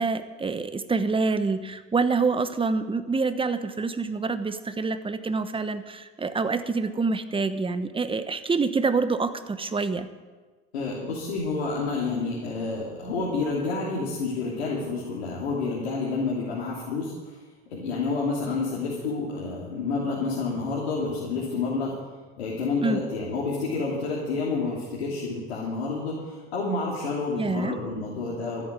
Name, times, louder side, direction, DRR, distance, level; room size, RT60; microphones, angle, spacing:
voice 1, 0.0-10.1 22.8-23.0 27.4-27.7, right 4 dB, 15° right, 11 dB, 1.1 m, -26 dB
voice 2, 10.7-17.3 17.7-21.9 22.4-28.7, left 3 dB, 85° left, -5 dB, 3.0 m, -29 dB
13.5 x 8.4 x 9.2 m, 1.3 s
hypercardioid pair, 85°, 32 cm